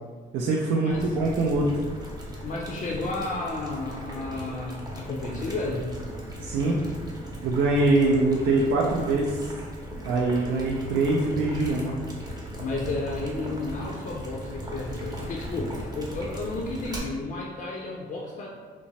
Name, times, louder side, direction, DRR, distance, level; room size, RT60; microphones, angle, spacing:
voice 1, 0.3-1.7 6.4-6.8 7.4-9.5 10.0-12.0, right 2 dB, 80° right, -2 dB, 0.4 m, -23 dB
Boiling, 0.9-17.0, equal, 20° right, 0.7 m, -37 dB
voice 2, 2.4-5.9 12.6-18.5, left 2 dB, 40° left, -2 dB, 0.4 m, -32 dB
2.9 x 2.1 x 2.7 m, 1.5 s
cardioid pair, 90°, 20 cm